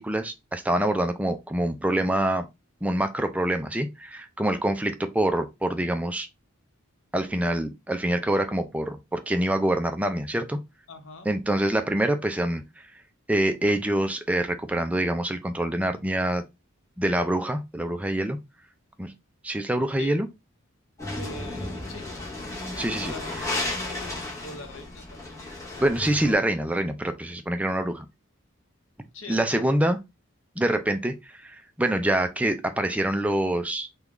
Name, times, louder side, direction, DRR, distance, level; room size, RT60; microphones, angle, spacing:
voice 1, 0.0-2.5 2.8-6.3 7.1-10.6 11.3-12.6 13.3-16.4 17.0-18.4 19.0-19.1 19.4-20.3 22.8-23.1 25.8-28.1 29.3-30.0 30.6-33.9, right 1 dB, 5° right, 0.4 m, -25 dB
voice 2, 10.9-11.3 20.0-20.2 21.1-22.1 23.0-23.4 23.9-24.0 24.4-25.5 29.1-29.9, left 2 dB, 65° left, 0.8 m, -42 dB
sound 1, 21.0-26.4, left 2 dB, 15° left, 0.9 m, -33 dB
3.6 x 2.3 x 3.0 m
head